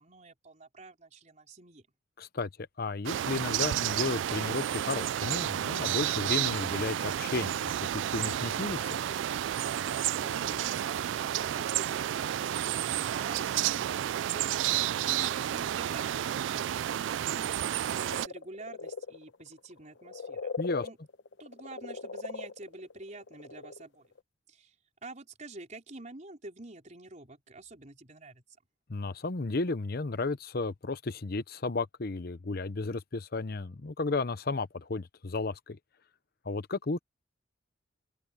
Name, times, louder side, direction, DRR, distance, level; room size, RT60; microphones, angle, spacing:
voice 1, 0.0-1.9 10.2-16.7 17.3-21.0 21.4-24.1 24.5-24.7 25.0-28.4, right 2 dB, 40° right, 4.3 m, -48 dB
voice 2, 2.2-2.5 2.8-9.0 20.6-20.9 28.9-35.8 36.4-37.0, left 3 dB, 55° left, 0.8 m, -33 dB
sound 1, 3.0-18.3, right 11 dB, 75° right, 0.3 m, -31 dB
sound 2, 7.6-13.4, left 3 dB, 35° left, 1.3 m, -56 dB
sound 3, 18.1-23.9 24.1-24.2, left 4 dB, 70° left, 1.1 m, -40 dB
open air
head